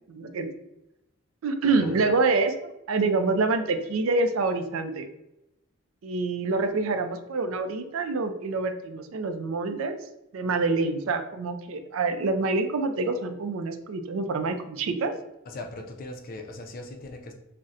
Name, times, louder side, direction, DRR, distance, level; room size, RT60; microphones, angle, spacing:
voice 1, 0.1-0.5 1.4-5.1 6.0-10.0 10.3-15.1, right 3 dB, 85° right, 8 dB, 0.4 m, -26 dB
voice 2, 15.5-17.3, left 2 dB, 45° left, 3 dB, 0.4 m, -39 dB
4.0 x 2.1 x 2.4 m, 0.87 s
head